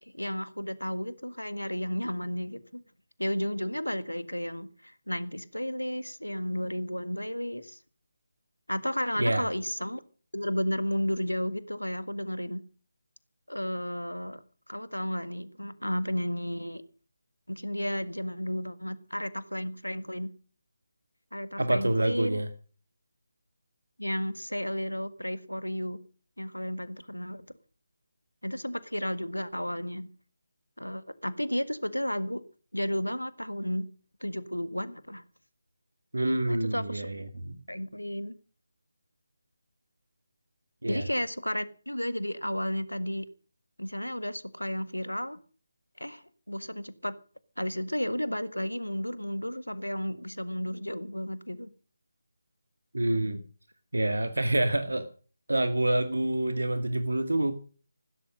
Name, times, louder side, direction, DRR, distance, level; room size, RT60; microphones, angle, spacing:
voice 1, 0.0-2.8 3.2-7.8 8.7-10.0 10.3-12.6 13.5-14.4 14.7-16.8 17.5-20.3 21.3-22.4 24.0-26.0 26.4-27.5 28.4-30.1 30.8-32.4 32.7-33.9 34.2-35.2 36.5-37.1 37.7-38.4 40.9-43.3 43.8-45.4 46.0-47.1 47.6-51.7, equal, 85° left, 1.7 m, -33 dB
voice 2, 21.6-22.5 36.1-37.6 40.8-41.0 52.9-53.4 53.9-55.1 55.5-57.5, right 1 dB, 70° right, 2.0 m, -27 dB
15.5 x 13.0 x 6.4 m
figure-of-eight pair, 155°, 0 cm